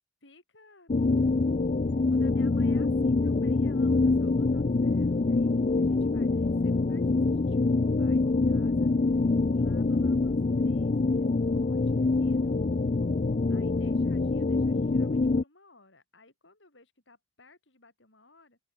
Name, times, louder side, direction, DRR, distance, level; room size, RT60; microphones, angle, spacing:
voice 1, 0.2-1.5 1.8-7.6 8.0-9.3 9.5-12.6 13.5-18.6, left 3 dB, 70° left, 7.3 m, -59 dB
sound 1, 0.9-15.4, left 3 dB, 40° left, 0.5 m, -25 dB
head